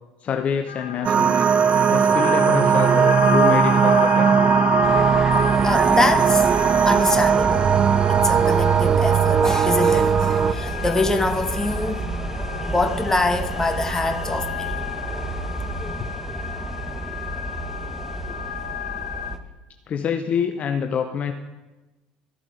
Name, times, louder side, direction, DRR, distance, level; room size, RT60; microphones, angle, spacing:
voice 1, 0.2-1.5 1.9-4.4 16.0-16.1 19.9-21.3, left 7 dB, 40° left, 7 dB, 0.7 m, -26 dB
sound 1, 0.7-19.4, left 8 dB, 80° left, 0.4 m, -31 dB
sound 2, 1.0-10.5, right 7 dB, 35° right, 0.4 m, -18 dB
sound 3, 4.8-19.4, right 2 dB, 10° right, 1.1 m, -31 dB
voice 2, 5.3-6.4 6.9-7.7 8.1-12.0 12.7-14.8, left 2 dB, 15° left, 8 dB, 1.2 m, -24 dB
13.5 x 7.3 x 4.2 m, 1.1 s
figure-of-eight pair, 65°, 3 cm